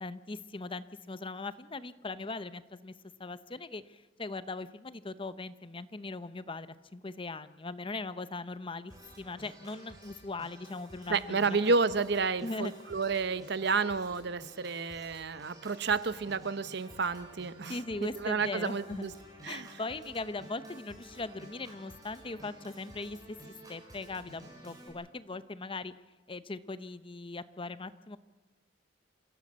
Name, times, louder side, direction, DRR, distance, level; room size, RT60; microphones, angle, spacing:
voice 1, 0.0-2.9 3.2-11.6 12.4-12.7 17.7-19.1 19.4-23.4 23.7-25.9 26.3-28.2, left 3 dB, 30° left, 13 dB, 0.8 m, -40 dB
Organ, 8.9-24.9, right 1 dB, 20° right, 6.5 m, -52 dB
voice 2, 11.1-17.8 18.2-19.1 19.4-19.7, right 4 dB, 65° right, 14 dB, 0.9 m, -30 dB
27.5 x 16.0 x 7.4 m, 1.2 s
head